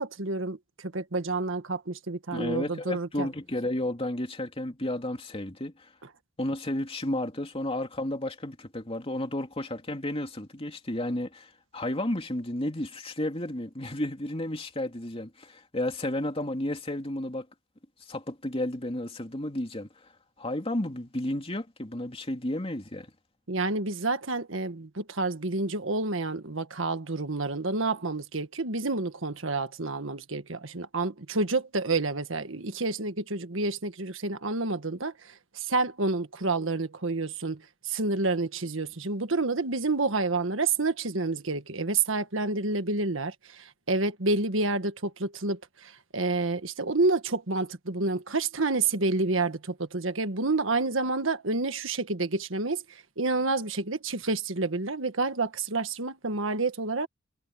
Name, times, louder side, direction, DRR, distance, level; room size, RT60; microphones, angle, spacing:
voice 1, 0.0-3.3 23.5-57.1, right 3 dB, 75° right, 1.6 m, -29 dB
voice 2, 2.3-5.9 6.4-17.5 18.1-19.9 20.4-23.1, left 1 dB, 30° left, 2.9 m, -32 dB
head